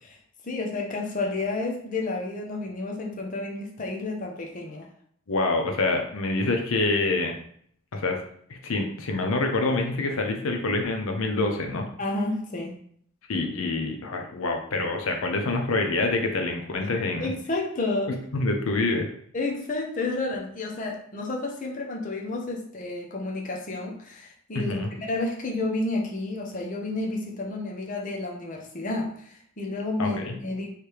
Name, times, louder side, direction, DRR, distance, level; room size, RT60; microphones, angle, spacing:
voice 1, 0.4-4.9 12.0-12.7 17.2-18.2 19.3-30.7, left 2 dB, 35° left, -1 dB, 0.7 m, -31 dB
voice 2, 5.3-7.3 7.9-8.2 8.5-11.9 13.3-17.3 18.3-19.1 24.5-24.9 30.0-30.3, left 2 dB, 75° left, 4 dB, 0.6 m, -26 dB
3.3 x 3.3 x 4.6 m, 0.64 s
head